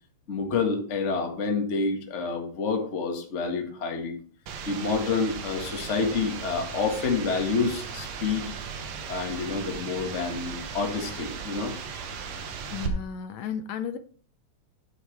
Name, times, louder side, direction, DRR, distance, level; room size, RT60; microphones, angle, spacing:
voice 1, 0.3-4.2 4.7-8.5 9.1-11.7, left 4 dB, 40° left, 2 dB, 1.1 m, -28 dB
sound 1, 4.5-12.9, right 6 dB, 85° right, 2.8 m, -37 dB
voice 2, 12.7-14.0, left 8 dB, 75° left, 9 dB, 1.6 m, -33 dB
9.3 x 8.9 x 3.2 m, 0.42 s
omnidirectional pair, 3.8 m